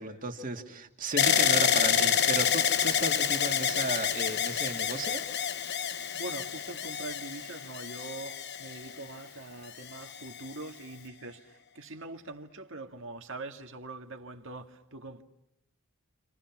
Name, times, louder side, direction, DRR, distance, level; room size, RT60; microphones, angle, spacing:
voice 1, 0.0-5.3, right 2 dB, 35° right, 2.4 m, -35 dB
Hiss, 1.1-11.1, left 9 dB, 65° left, 2.4 m, -48 dB
sound 1, 1.2-9.2 9.9-10.5, left 8 dB, 50° left, 1.0 m, -28 dB
voice 2, 6.1-15.2, right 2 dB, 60° right, 1.9 m, -43 dB
29.0 x 28.5 x 6.0 m
head